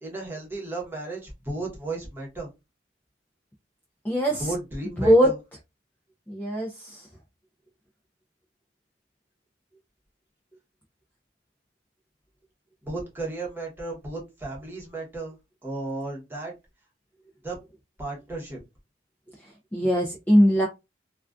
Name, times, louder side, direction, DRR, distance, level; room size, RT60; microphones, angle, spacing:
voice 1, 0.0-2.5 4.4-5.4 12.8-15.4 15.6-16.5 17.4-17.6 18.0-18.6, right 2 dB, 10° right, -2 dB, 0.8 m, -34 dB
voice 2, 4.0-4.5 5.0-5.3 6.3-7.1 19.7-20.7, equal, 10° left, 0 dB, 0.3 m, -21 dB
2.4 x 2.2 x 2.3 m, 0.24 s
head